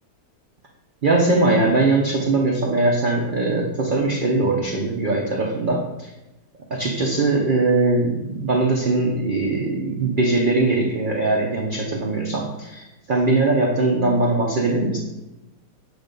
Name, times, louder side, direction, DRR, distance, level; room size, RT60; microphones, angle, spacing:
voice 1, 1.0-6.1 6.7-15.0, right 2 dB, 55° right, -1 dB, 0.5 m, -21 dB
7.8 x 2.6 x 5.1 m, 1.0 s
omnidirectional pair, 1.8 m